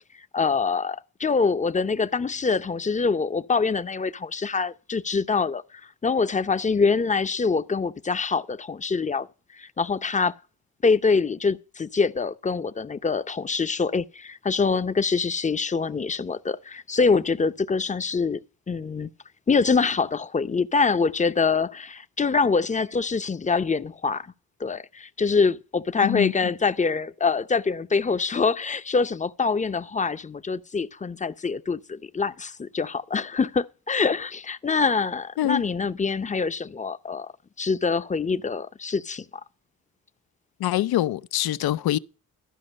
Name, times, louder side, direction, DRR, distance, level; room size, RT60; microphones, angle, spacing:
voice 1, 0.3-9.3 9.5-10.3 10.8-18.4 18.7-19.1 19.5-24.3 24.6-37.3 37.6-39.2, left 4 dB, 20° left, 0.6 m, -25 dB
voice 2, 26.0-26.3 35.4-35.6 40.6-42.0, left 13 dB, 80° left, 0.5 m, -24 dB
13.0 x 5.1 x 6.3 m
cardioid pair, 70°, 37 cm